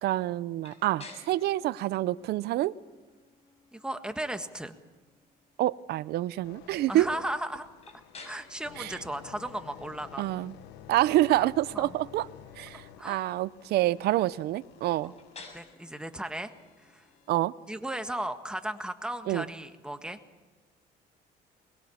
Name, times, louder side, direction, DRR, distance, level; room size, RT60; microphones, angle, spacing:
voice 1, 0.0-2.7 5.6-7.1 8.8-8.9 10.2-10.5 10.9-12.3 12.6-15.1 17.3-17.5 19.3-19.4, right 15 dB, 75° right, 0.7 m, -27 dB
sound 1, 0.6-20.4, left 3 dB, 40° left, 6.2 m, -56 dB
voice 2, 3.7-4.7 6.9-7.7 8.2-10.3 11.7-12.0 13.0-13.2 15.0-15.1 15.5-16.5 16.8-17.0 17.7-20.2, right 1 dB, 5° right, 1.6 m, -36 dB
sound 2, 6.4-17.4 17.9-18.1, left 10 dB, 90° left, 1.2 m, -51 dB
22.0 x 21.5 x 7.2 m
cardioid pair, 110°, 17 cm